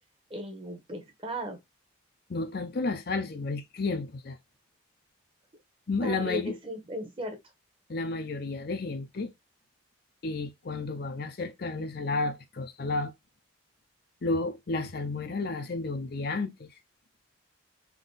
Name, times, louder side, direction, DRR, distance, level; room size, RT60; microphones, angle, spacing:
voice 1, 0.3-1.6 6.0-7.4, equal, 25° right, 1.0 m, -36 dB
voice 2, 2.3-4.4 5.9-6.6 7.9-9.3 10.2-13.1 14.2-16.7, left 3 dB, 50° left, 0.5 m, -32 dB
3.7 x 2.7 x 3.9 m
head